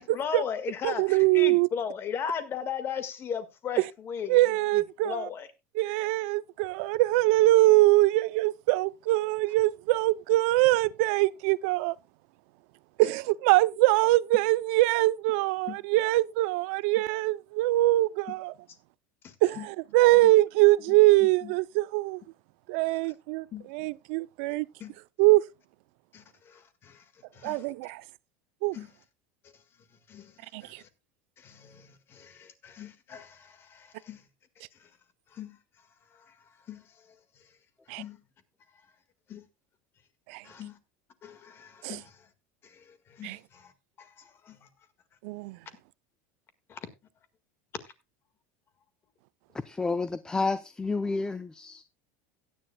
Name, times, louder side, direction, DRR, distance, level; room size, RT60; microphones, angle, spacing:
voice 1, 0.0-4.4 4.7-5.5 15.7-15.8 19.2-19.7 20.2-20.3 21.2-21.5 23.5-23.7 24.8-24.9 26.1-27.0 27.3-27.7 28.7-28.9 30.1-30.3 30.6-30.9 31.4-34.2 35.3-35.6 36.7-36.8 38.0-38.2 39.3-39.5 40.4-40.8 41.2-42.1 42.6-43.7 44.0-44.7 46.7-46.8, left 7 dB, 30° left, 1.7 m, -38 dB
voice 2, 0.8-1.7 3.8-3.9 4.3-5.3 5.7-11.9 13.0-18.5 19.4-22.2 22.7-24.7 25.2-25.4 27.4-28.0 28.6-28.8 30.5-30.8 37.9-38.0 40.3-40.4 41.8-42.0 43.2-43.4 45.2-45.6, right 19 dB, 70° right, 0.5 m, -23 dB
voice 3, 49.6-51.8, left 3 dB, 10° left, 0.5 m, -30 dB
17.0 x 10.0 x 2.2 m
supercardioid pair, 140°, 7 cm